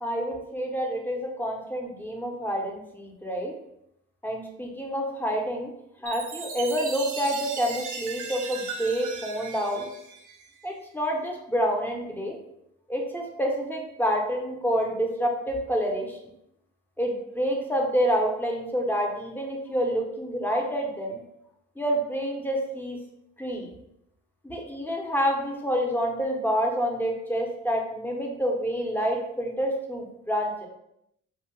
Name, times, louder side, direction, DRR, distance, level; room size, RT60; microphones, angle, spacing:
voice 1, 0.0-3.5 4.2-5.7 6.0-9.9 10.6-12.4 12.9-16.2 17.0-21.2 21.8-23.0 23.4-23.7 24.4-30.7, equal, 5° left, 0 dB, 0.6 m, -28 dB
Chime, 6.1-10.7, right 5 dB, 80° right, 0.5 m, -37 dB
2.6 x 2.1 x 3.0 m, 0.79 s
cardioid pair, 90°, 30 cm